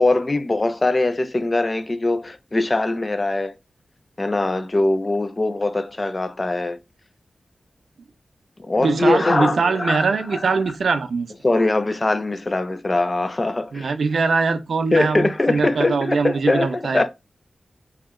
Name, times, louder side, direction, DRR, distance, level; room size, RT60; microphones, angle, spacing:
voice 1, 0.0-3.6 4.2-6.8 8.6-10.5 11.4-13.9 14.9-17.1, left 2 dB, 25° left, 0.3 m, -22 dB
voice 2, 8.8-11.3 13.7-17.0, right 4 dB, 75° right, 0.5 m, -22 dB
3.0 x 2.8 x 3.6 m
wide cardioid pair, 145°, 0 cm